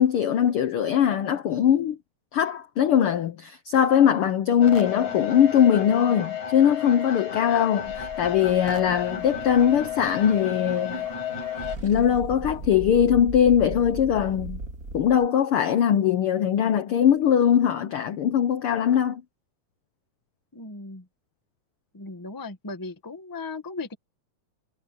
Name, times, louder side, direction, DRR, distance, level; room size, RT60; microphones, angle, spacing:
voice 1, 0.0-2.0 2.3-11.1 11.8-14.6 14.9-19.2, left 9 dB, 80° left, 1.2 m, -21 dB
sound 1, 4.6-11.8, left 8 dB, 65° left, 8.3 m, -32 dB
sound 2, 7.8-10.7 11.0-11.2 11.4-15.3, right 2 dB, 30° right, 2.5 m, -38 dB
voice 2, 20.5-21.1 21.9-23.9, left 3 dB, 15° left, 0.7 m, -37 dB
omnidirectional pair, 3.7 m